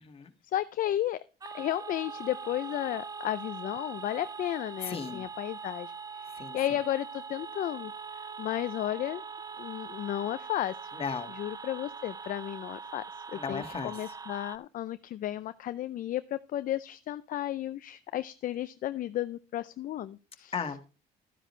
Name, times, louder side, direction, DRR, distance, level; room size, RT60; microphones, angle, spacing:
voice 1, 0.5-1.2 1.5-6.3 6.5-7.9 8.2-9.2 9.6-10.8 11.4-13.0 13.3-20.5, left 12 dB, 55° left, 13 dB, 0.5 m, -33 dB
sound 1, 1.4-14.6, right 5 dB, 20° right, 0.5 m, -42 dB
voice 2, 4.8-5.2 6.3-6.6 10.9-11.3 13.3-14.2 20.5-20.8, left 6 dB, 35° left, 6 dB, 1.8 m, -36 dB
12.5 x 10.0 x 3.2 m, 0.33 s
cardioid pair, 110°, 17 cm